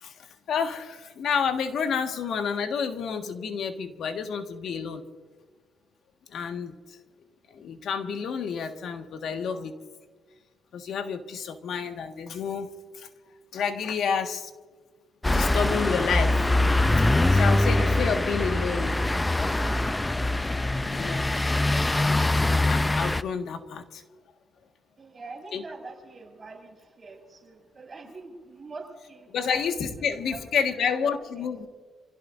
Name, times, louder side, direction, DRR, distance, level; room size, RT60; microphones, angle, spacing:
voice 1, 0.0-5.0 6.3-6.7 7.5-9.7 10.7-13.1 13.5-14.5 15.2-16.4 17.3-19.0 20.8-21.3 22.6-24.0 25.5-25.6 29.3-31.7, left 6 dB, 70° left, 6 dB, 1.7 m, -29 dB
sound 1, 15.2-23.2, left 2 dB, 15° left, 0.5 m, -23 dB
voice 2, 25.0-31.5, right 3 dB, 35° right, 0 dB, 5.5 m, -45 dB
27.5 x 17.0 x 2.6 m, 1.5 s
cardioid pair, 90°, 0 cm